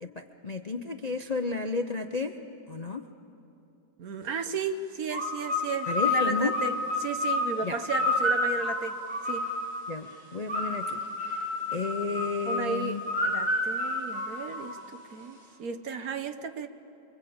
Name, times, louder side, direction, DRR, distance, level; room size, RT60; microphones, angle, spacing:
voice 1, 0.0-2.3 2.7-3.0 5.9-6.5 7.6-7.8 9.9-11.5 11.7-13.0, left 4 dB, 40° left, 6 dB, 0.5 m, -32 dB
voice 2, 4.0-8.9 9.2-9.5 12.5-16.7, right 5 dB, 60° right, 9 dB, 1.4 m, -34 dB
sound 1, 5.1-9.8 10.5-14.9, left 2 dB, 25° right, 6.7 m, -29 dB
29.0 x 23.5 x 8.7 m, 2.8 s
omnidirectional pair, 1.8 m